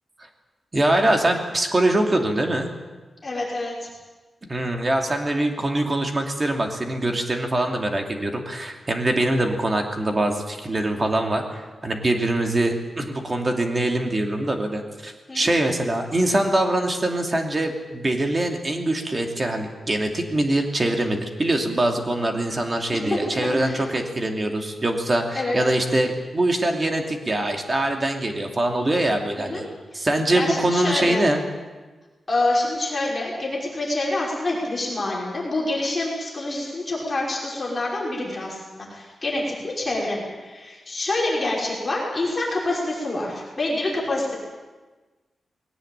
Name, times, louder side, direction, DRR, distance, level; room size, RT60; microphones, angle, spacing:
voice 1, 0.7-2.7 4.5-29.6 29.9-31.4, right 1 dB, 25° right, 3 dB, 2.7 m, -23 dB
voice 2, 3.2-3.9 15.3-15.5 22.9-23.2 23.6-23.8 25.3-25.6 29.3-29.7 30.3-31.3 32.3-44.3, left 2 dB, 25° left, -4 dB, 5.7 m, -27 dB
20.5 x 18.0 x 8.9 m, 1.3 s
wide cardioid pair, 150°, 0 cm